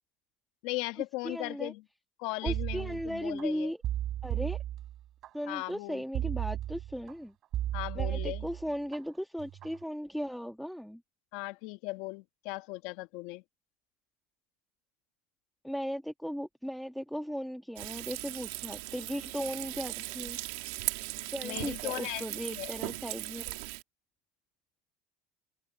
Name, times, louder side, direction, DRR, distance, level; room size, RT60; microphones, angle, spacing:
voice 1, 0.6-1.8 2.2-3.7 5.5-6.0 7.7-8.5 11.3-13.4 21.4-22.7, left 21 dB, 70° left, 1.2 m, -38 dB
voice 2, 1.2-1.7 2.4-3.8 4.2-4.6 5.3-7.3 7.9-11.0 15.6-20.4 21.3-23.5, equal, ahead, 1.4 m, -37 dB
sound 1, 2.5-3.4 3.8-5.3 6.1-7.1 7.5-9.0 9.4-9.8, right 12 dB, 50° right, 3.7 m, -34 dB
Frying (food), 17.8-23.8, right 23 dB, 80° right, 2.2 m, -38 dB
open air
supercardioid pair, 110°, 0 cm